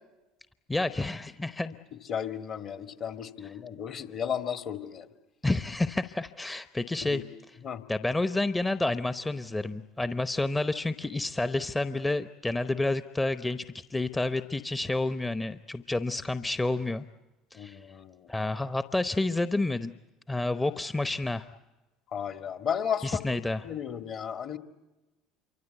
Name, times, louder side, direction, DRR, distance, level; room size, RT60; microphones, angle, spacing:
voice 1, 0.7-1.7 5.4-7.2 7.9-17.0 17.5-17.8 18.3-19.9 20.3-21.4 23.0-23.6, left 2 dB, 15° left, 11 dB, 0.9 m, -29 dB
voice 2, 2.1-5.1 7.1-7.2 7.6-7.8 17.6-18.3 22.1-23.2 23.6-24.6, left 8 dB, 45° left, 8 dB, 1.8 m, -34 dB
27.5 x 24.5 x 8.2 m, 1.1 s
figure-of-eight pair, 65°, 0 cm